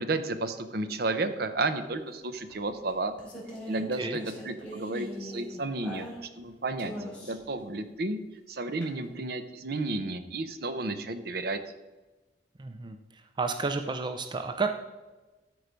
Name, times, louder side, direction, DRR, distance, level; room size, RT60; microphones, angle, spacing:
voice 1, 0.0-3.1 3.7-6.1 6.4-6.9 7.2-8.2 8.5-11.6, right 2 dB, 60° right, 10 dB, 0.7 m, -32 dB
sound 1, 2.5-6.4 6.8-7.5 8.8-8.9, equal, 5° left, 3.1 m, -41 dB
voice 2, 12.6-13.0 13.4-14.7, right 4 dB, 25° right, 7 dB, 0.5 m, -31 dB
12.5 x 4.7 x 5.2 m, 1.1 s
head